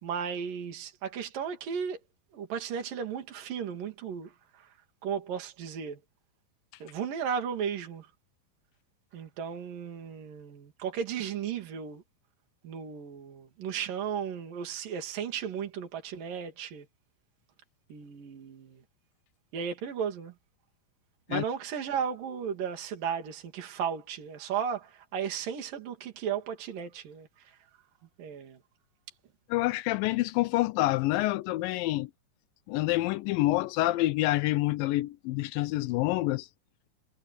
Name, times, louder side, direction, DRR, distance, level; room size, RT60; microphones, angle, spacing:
voice 1, 0.0-2.0 2.3-4.7 5.0-6.0 6.8-8.1 9.1-12.0 12.6-16.9 17.9-18.8 19.5-20.3 21.3-27.5 28.2-28.6, right 7 dB, 65° right, 4.4 m, -35 dB
voice 2, 29.5-32.1 32.7-36.5, left 17 dB, 80° left, 2.2 m, -27 dB
omnidirectional pair, 4.2 m